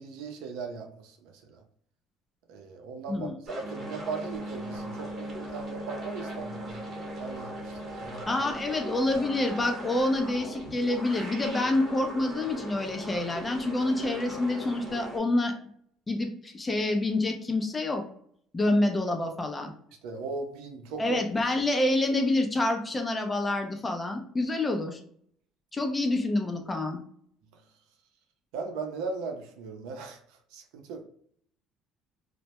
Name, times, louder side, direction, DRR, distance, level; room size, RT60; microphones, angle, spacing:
voice 1, 0.0-1.6 2.5-6.8 7.2-8.3 20.0-21.2 27.5-27.6 28.5-30.2 30.5-31.0, right 4 dB, 85° right, 4 dB, 0.5 m, -38 dB
sound 1, 3.4-15.2, right 1 dB, 35° right, 0.8 m, -39 dB
voice 2, 8.3-15.5 16.1-18.0 18.5-19.7 21.0-25.0 25.7-27.0, left 2 dB, 15° left, 4 dB, 0.4 m, -27 dB
2.1 x 2.0 x 2.8 m, 0.63 s
cardioid pair, 140°, 0 cm